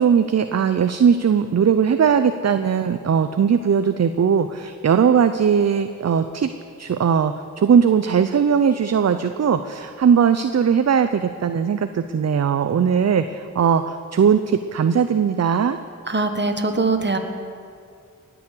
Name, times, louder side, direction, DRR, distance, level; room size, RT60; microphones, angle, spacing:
voice 1, 0.0-6.5 6.8-15.8, right 7 dB, 50° right, 10 dB, 0.6 m, -19 dB
voice 2, 16.1-17.2, right 3 dB, 35° right, 6 dB, 1.6 m, -22 dB
19.5 x 7.1 x 8.5 m, 2.3 s
cardioid pair, 50°, 32 cm